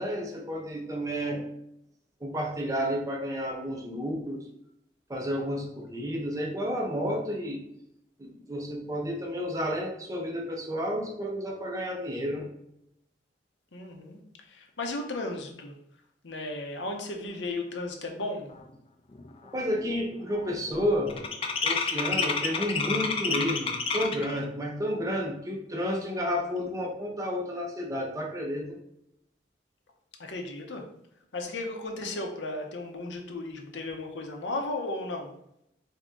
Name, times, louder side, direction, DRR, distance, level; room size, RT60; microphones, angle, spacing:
voice 1, 0.0-1.4 2.2-4.5 5.1-7.7 8.2-12.5 19.5-21.1 21.6-28.8, equal, 20° right, 0 dB, 0.6 m, -31 dB
voice 2, 13.7-14.2 14.5-15.8 16.2-18.5 30.2-30.8 31.3-35.3, left 2 dB, 85° left, 3 dB, 0.7 m, -35 dB
sound 1, 18.7-18.8 19.1-19.5 19.7-24.4, left 4 dB, 30° left, 0.3 m, -30 dB
3.7 x 2.8 x 3.6 m, 0.78 s
head